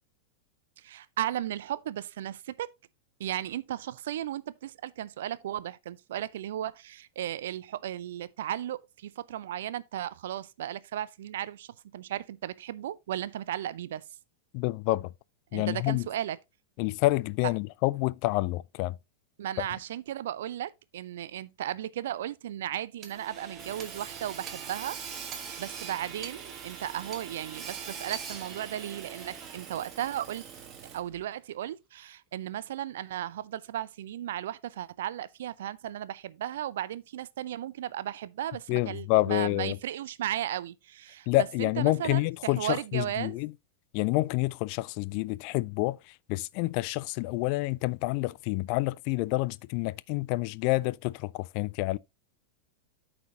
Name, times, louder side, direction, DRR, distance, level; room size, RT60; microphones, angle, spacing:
voice 1, 0.8-2.7 3.2-14.0 15.5-16.4 19.4-25.0 25.4-30.5 30.9-43.4, right 12 dB, 60° right, 0.4 m, -35 dB
voice 2, 14.5-15.1 15.5-16.1 16.8-19.0 38.7-39.8 41.3-43.5 43.9-46.0 46.3-52.0, left 20 dB, 45° left, 0.3 m, -28 dB
Hammer / Sawing, 23.0-31.2, right 7 dB, 30° right, 1.4 m, -42 dB
13.0 x 4.4 x 2.9 m
figure-of-eight pair, 90°, 0 cm